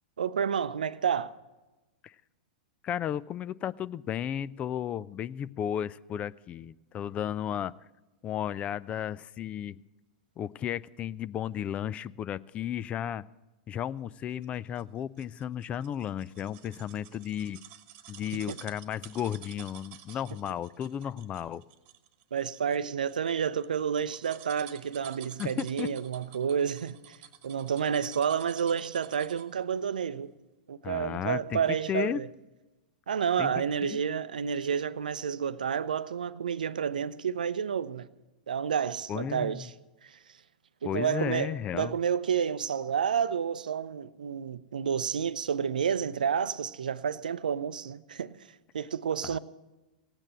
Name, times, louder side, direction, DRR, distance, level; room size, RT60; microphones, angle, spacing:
voice 1, 0.2-1.3 18.3-18.6 22.3-27.2 27.4-30.3 30.7-32.3 33.1-38.1 38.5-39.7 40.0-40.2 40.8-48.4 48.7-49.4, right 7 dB, 80° right, 0.6 m, -30 dB
voice 2, 2.8-7.7 8.2-9.8 10.4-13.2 13.7-17.6 18.1-21.6 25.4-25.9 30.8-31.6 31.9-32.2 33.4-33.6 33.9-34.0 39.1-39.7 40.8-42.0 49.2-49.4, left 10 dB, 30° left, 0.4 m, -34 dB
sound 1, 14.4-29.6 30.0-30.1, right 11 dB, 40° right, 1.2 m, -51 dB
17.0 x 8.9 x 7.5 m
hypercardioid pair, 105°, 4 cm